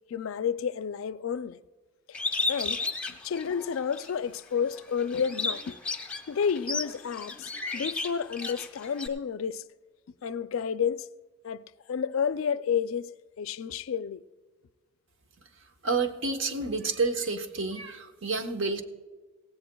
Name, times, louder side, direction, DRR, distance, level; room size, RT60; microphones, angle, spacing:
voice 1, 0.1-1.6 2.5-2.8 3.1-5.8 6.3-9.6 10.2-11.1 11.4-13.1 13.4-14.2, left 7 dB, 70° left, 0.4 m, -30 dB
Bird, 2.1-4.1 4.6-9.1, left 3 dB, 5° left, 0.9 m, -33 dB
voice 2, 15.8-18.8, right 3 dB, 65° right, 1.0 m, -29 dB
18.0 x 16.0 x 2.3 m
head